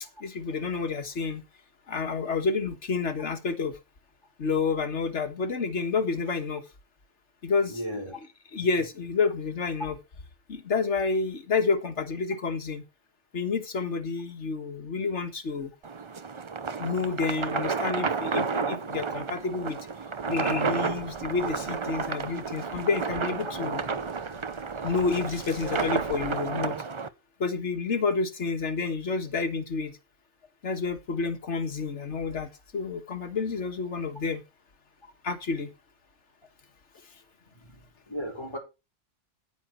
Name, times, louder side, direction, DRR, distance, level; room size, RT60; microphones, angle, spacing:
voice 1, 0.2-1.4 1.9-3.8 4.4-6.6 7.4-7.8 8.5-10.0 10.5-12.8 13.3-15.7 16.8-19.8 20.3-23.8 24.8-26.8 27.4-30.0 30.6-34.4 35.2-35.7, left 4 dB, 75° left, 1.9 m, -29 dB
voice 2, 7.7-8.2 35.0-35.1 37.5-37.8 38.1-38.6, equal, 25° left, 4.0 m, -36 dB
sound 1, 15.8-27.1, right 5 dB, 35° right, 0.6 m, -31 dB
sound 2, 20.9-26.6, right 2 dB, 65° right, 2.9 m, -49 dB
9.6 x 9.3 x 4.4 m
omnidirectional pair, 1.2 m